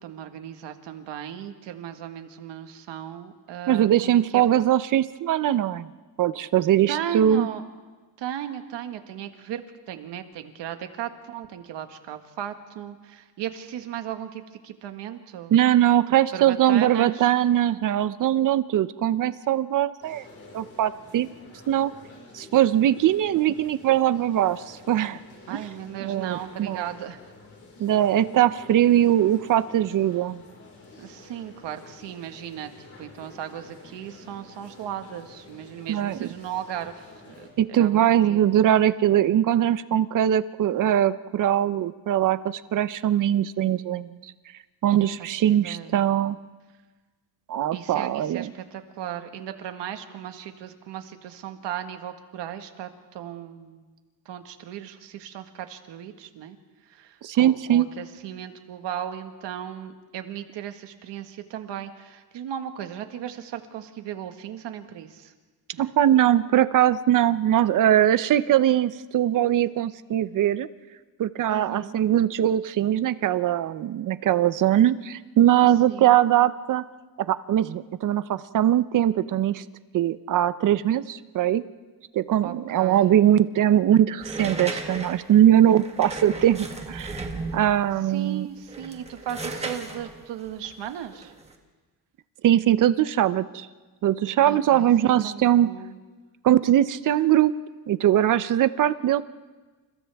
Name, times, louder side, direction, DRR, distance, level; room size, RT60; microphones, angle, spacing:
voice 1, 0.0-4.4 6.9-7.6 8.2-15.6 16.3-17.3 25.5-27.2 31.0-38.4 45.0-46.0 47.7-53.8 54.2-56.6 56.8-65.3 65.7-65.9 71.5-72.0 75.9-76.2 82.4-83.1 88.0-91.3 94.4-94.9 95.2-96.0, right 10 dB, 90° right, 7 dB, 1.7 m, -36 dB
voice 2, 3.7-5.9 6.2-7.5 15.5-20.2 20.5-21.3 21.7-21.9 22.3-25.2 25.5-25.6 26.0-26.9 27.8-30.4 35.9-36.3 37.6-44.2 44.8-46.4 47.5-48.5 57.2-57.9 65.8-70.7 71.2-76.8 77.3-79.6 79.9-81.6 82.1-87.2 87.5-88.5 92.4-93.7 94.0-95.7 96.4-97.5 97.9-99.2, right 11 dB, 50° right, 15 dB, 0.7 m, -21 dB
sound 1, 20.0-37.5, left 2 dB, 35° left, 4.8 m, -49 dB
sound 2, 84.2-87.9 88.6-91.5, right 3 dB, 15° right, 1.6 m, -35 dB
29.5 x 29.0 x 3.5 m, 1.3 s
cardioid pair, 175°, 41 cm